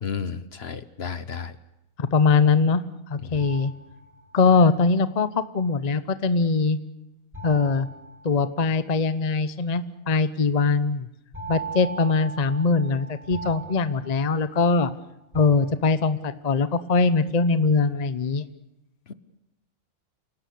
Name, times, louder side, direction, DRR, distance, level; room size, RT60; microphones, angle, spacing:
voice 1, 0.0-1.5 3.2-3.5 19.1-19.2, left 6 dB, 55° left, 14 dB, 1.3 m, -33 dB
voice 2, 2.0-2.8 3.1-3.7 4.3-6.8 7.4-7.9 8.2-11.1 11.5-14.9 15.3-18.4, left 4 dB, 35° left, 13 dB, 1.0 m, -22 dB
sound 1, 3.3-4.6 7.3-9.0 11.3-14.9 15.3-16.3, right 3 dB, 25° right, 7.9 m, -39 dB
28.0 x 18.0 x 8.5 m, 0.91 s
omnidirectional pair, 1.3 m